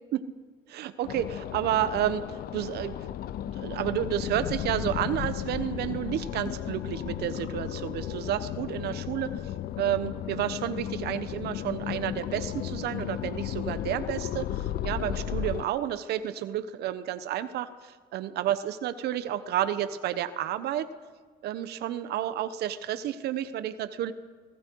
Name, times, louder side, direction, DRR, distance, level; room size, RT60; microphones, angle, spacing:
voice 1, 0.7-3.0 3.5-9.3 9.8-20.9 21.4-24.1, right 11 dB, 75° right, 12 dB, 1.1 m, -31 dB
sound 1, 1.0-15.6, left 11 dB, 65° left, 0.7 m, -34 dB
28.5 x 19.0 x 4.7 m, 1.5 s
cardioid pair, 110°, 17 cm